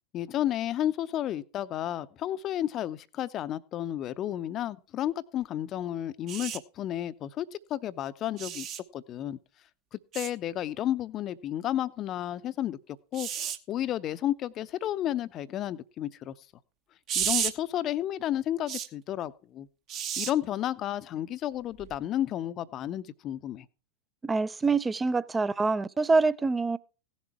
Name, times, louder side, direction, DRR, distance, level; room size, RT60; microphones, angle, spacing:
voice 1, 0.1-8.7 8.9-9.4 9.9-12.8 13.1-16.3 17.1-19.7 20.2-23.7, left 12 dB, 30° left, 0.6 m, -32 dB
sound 1, 6.3-6.6 8.4-8.8 10.1-10.3 13.1-13.6 17.1-17.5 18.7-18.9 19.9-20.3 21.8-22.0, right 9 dB, 35° right, 1.0 m, -31 dB
voice 2, 24.2-26.8, right 4 dB, 15° right, 0.5 m, -25 dB
16.5 x 7.3 x 4.6 m
figure-of-eight pair, 90°, 0 cm